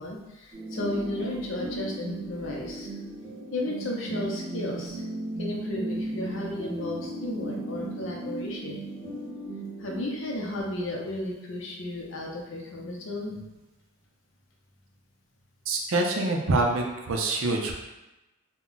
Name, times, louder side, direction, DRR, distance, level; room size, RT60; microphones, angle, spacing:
voice 1, 0.0-2.9 3.5-5.0 5.4-8.8 9.8-13.6, left 1 dB, 60° left, -2 dB, 0.6 m, -34 dB
sound 1, 0.5-10.6, right 1 dB, 25° right, 0.7 m, -36 dB
voice 2, 15.7-17.7, right 2 dB, 70° right, 2 dB, 0.4 m, -25 dB
2.2 x 2.1 x 3.8 m, 1.0 s
head